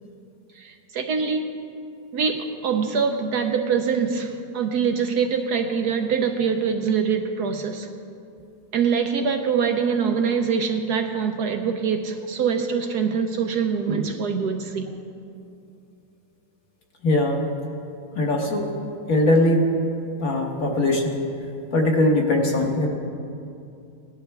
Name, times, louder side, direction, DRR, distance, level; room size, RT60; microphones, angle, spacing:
voice 1, 0.6-1.4 2.1-7.9 8.7-14.9, right 6 dB, 70° right, 5 dB, 1.1 m, -24 dB
voice 2, 17.0-17.4 18.1-18.7 19.1-19.6 20.2-21.2 21.7-22.9, left 1 dB, 50° left, 0 dB, 1.6 m, -20 dB
18.0 x 11.0 x 3.4 m, 2.6 s
omnidirectional pair, 2.0 m